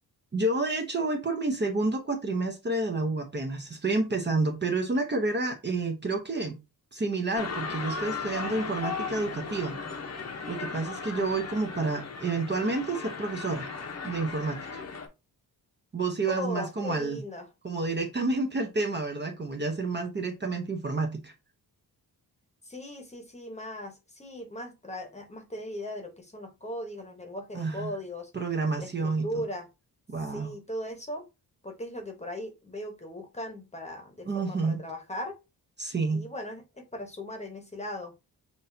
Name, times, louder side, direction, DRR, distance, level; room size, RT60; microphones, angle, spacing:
voice 1, 0.3-6.6 6.9-9.8 10.5-13.7 14.0-14.8 15.9-17.2 17.6-21.3 27.5-27.9 28.3-29.4 30.1-30.5 34.3-34.8 35.8-36.3, right 3 dB, 30° right, 4 dB, 0.8 m, -29 dB
sound 1, 7.3-15.1, left 4 dB, 40° left, 0.9 m, -37 dB
voice 2, 16.3-17.5 22.6-28.3 28.8-29.7 30.2-31.2 31.6-35.4 36.1-38.1, equal, 15° left, 4 dB, 1.1 m, -38 dB
6.1 x 2.6 x 2.7 m, 0.25 s
wide cardioid pair, 130°, 38 cm